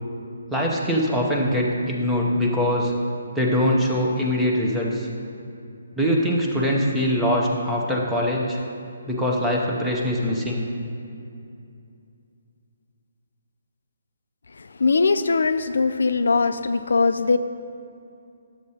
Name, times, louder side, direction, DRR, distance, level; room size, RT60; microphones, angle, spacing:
voice 1, 0.5-2.9 3.3-5.1 6.0-8.6 9.1-10.7, equal, 5° right, -3 dB, 0.6 m, -22 dB
voice 2, 14.6-17.4, left 4 dB, 75° left, 10 dB, 0.3 m, -21 dB
11.5 x 7.3 x 2.8 m, 2.6 s
hypercardioid pair, 170°, 0 cm